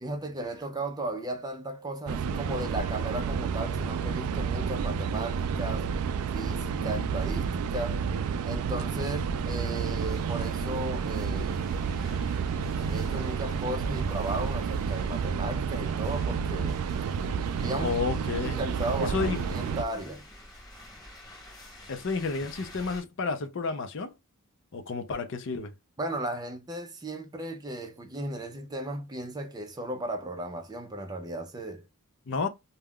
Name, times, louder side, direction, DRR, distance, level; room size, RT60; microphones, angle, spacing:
voice 1, 0.0-5.9 6.3-8.0 8.4-11.7 12.9-16.8 17.6-18.0 18.4-20.3 26.0-31.8, right 1 dB, 20° right, 0.5 m, -35 dB
sound 1, 2.1-19.8, right 6 dB, 85° right, 0.3 m, -30 dB
voice 2, 6.6-7.1 17.8-18.6 19.0-19.4 21.9-24.1 24.7-25.7 32.3-32.5, left 4 dB, 60° left, 0.5 m, -31 dB
sound 2, 9.7-23.0, left 1 dB, 20° left, 1.0 m, -49 dB
2.3 x 2.1 x 3.5 m
head